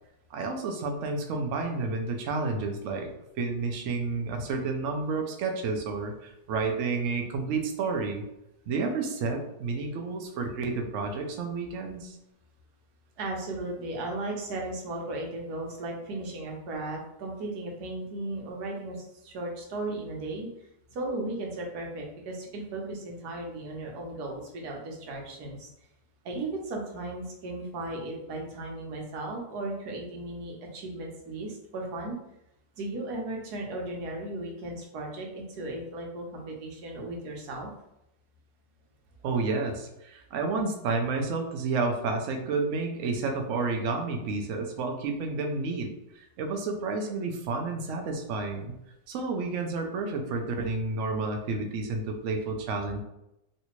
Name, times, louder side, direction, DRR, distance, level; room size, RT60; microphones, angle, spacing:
voice 1, 0.3-3.1 3.4-8.2 8.7-12.2 39.2-48.7 49.1-53.0, right 3 dB, 85° right, 3 dB, 0.6 m, -30 dB
voice 2, 13.2-20.5 20.9-25.7 26.2-32.2 32.8-37.7, right 2 dB, 65° right, 0 dB, 1.2 m, -36 dB
3.2 x 2.7 x 3.0 m, 0.85 s
omnidirectional pair, 1.9 m